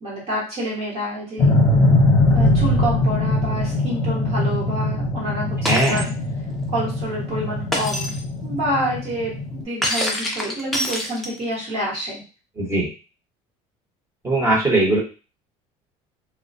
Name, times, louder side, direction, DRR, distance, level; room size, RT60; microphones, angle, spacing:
voice 1, 0.0-1.5 2.3-6.1 6.7-8.1 8.4-12.2, equal, 40° right, -5 dB, 1.3 m, -28 dB
sound 1, 1.4-9.6, left 2 dB, 20° left, 1.0 m, -21 dB
voice 2, 5.6-6.0 12.6-12.9 14.2-15.0, right 2 dB, 20° right, -4 dB, 1.1 m, -19 dB
Shatter, 5.7-6.1 7.7-8.2 9.8-11.5, equal, ahead, 0.6 m, -25 dB
2.3 x 2.2 x 2.6 m, 0.33 s
cardioid pair, 115°, 15 cm